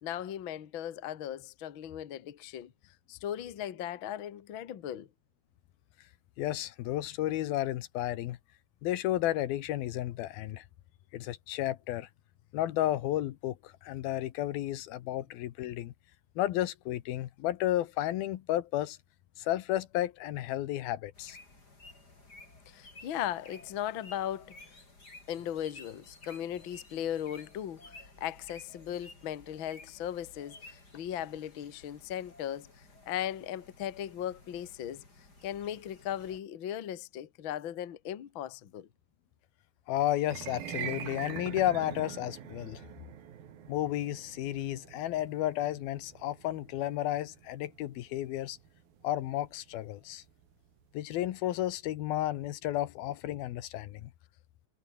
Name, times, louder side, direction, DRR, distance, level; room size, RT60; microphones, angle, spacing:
voice 1, 0.0-2.7 3.1-5.1 22.7-24.6 25.3-35.0 35.4-38.9, left 11 dB, 50° left, 1.5 m, -37 dB
voice 2, 6.4-8.4 8.8-10.6 11.1-12.1 12.5-15.9 16.4-19.0 19.4-21.4 39.9-42.8 43.7-48.6 49.0-50.2 50.9-54.1, left 14 dB, 80° left, 3.0 m, -32 dB
sound 1, 21.1-36.4, left 2 dB, 25° left, 7.2 m, -54 dB
sound 2, 40.2-50.5, right 9 dB, 75° right, 4.0 m, -44 dB
omnidirectional pair, 4.4 m